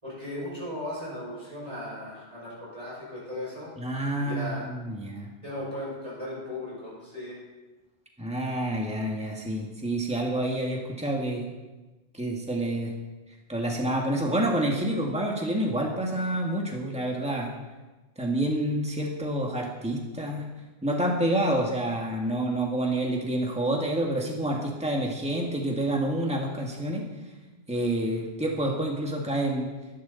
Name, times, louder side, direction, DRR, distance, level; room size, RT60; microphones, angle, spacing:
voice 1, 0.0-3.7 4.1-4.7 5.4-7.4, left 1 dB, 30° right, -7 dB, 6.4 m, -37 dB
voice 2, 3.8-5.3 8.2-11.5 12.1-12.9 13.5-17.6 18.2-20.5 20.8-27.1 27.7-29.7, right 1 dB, 5° right, -1 dB, 2.1 m, -28 dB
22.5 x 11.5 x 4.2 m, 1.2 s
omnidirectional pair, 1.0 m